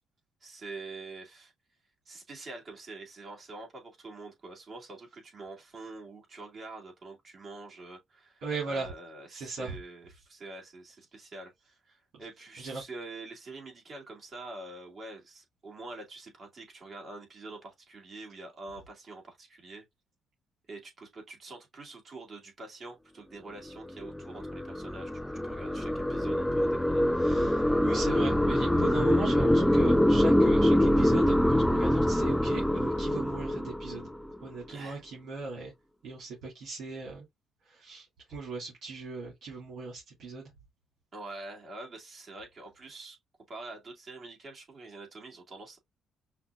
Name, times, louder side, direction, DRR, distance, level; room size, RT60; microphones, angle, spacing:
voice 1, 0.4-1.5 2.1-11.8 12.2-19.8 20.7-25.1 25.4-27.2 34.7-35.0 41.1-43.2 43.5-45.8, right 2 dB, 45° right, 2.2 m, -45 dB
voice 2, 8.4-8.9 9.3-9.8 12.6-12.8 27.2-34.1 34.4-35.7 36.0-37.2 37.6-40.5, right 4 dB, 75° right, 2.4 m, -38 dB
sound 1, 23.8-34.4, left 1 dB, 5° left, 0.3 m, -25 dB
5.7 x 2.5 x 2.3 m
cardioid pair, 90°, 0 cm